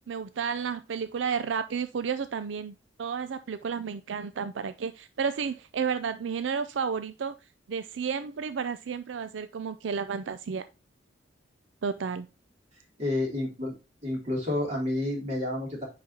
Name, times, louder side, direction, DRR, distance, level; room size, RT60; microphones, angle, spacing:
voice 1, 0.0-7.3 7.7-10.6 11.8-12.3, right 6 dB, 85° right, 11 dB, 0.4 m, -32 dB
voice 2, 13.0-13.7 14.0-15.9, left 1 dB, 40° right, -3 dB, 3.4 m, -29 dB
9.5 x 4.1 x 2.7 m, 0.29 s
head